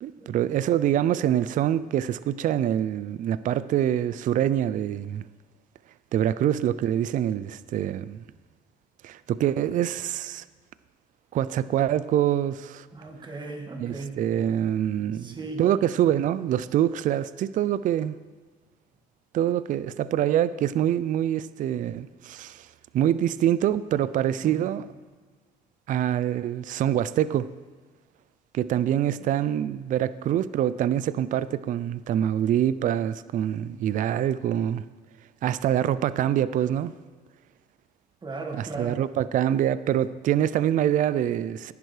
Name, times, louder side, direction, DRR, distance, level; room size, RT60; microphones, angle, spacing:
voice 1, 0.0-5.2 6.1-8.2 9.0-10.4 11.3-12.9 13.8-18.2 19.3-22.7 22.9-24.8 25.9-27.5 28.5-34.8 35.4-36.9 38.5-41.7, right 11 dB, 50° right, 16 dB, 0.4 m, -25 dB
voice 2, 12.9-14.1 15.2-15.6 24.4-24.7 28.9-29.3 38.2-39.0, right 3 dB, 25° right, 2 dB, 1.8 m, -37 dB
17.0 x 10.5 x 3.3 m, 1.4 s
cardioid pair, 110°, 17 cm